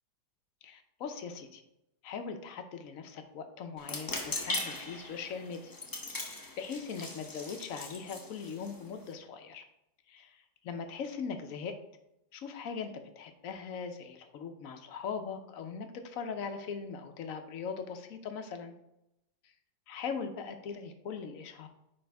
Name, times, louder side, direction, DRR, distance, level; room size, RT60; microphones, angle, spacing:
voice 1, 0.6-1.6 2.0-5.7 6.1-9.6 10.1-11.7 12.3-18.7 19.9-21.7, left 6 dB, 65° left, 7 dB, 1.0 m, -40 dB
sound 1, 3.8-9.1, left 2 dB, 20° left, 0.6 m, -40 dB
9.6 x 3.4 x 3.4 m, 0.84 s
omnidirectional pair, 1.7 m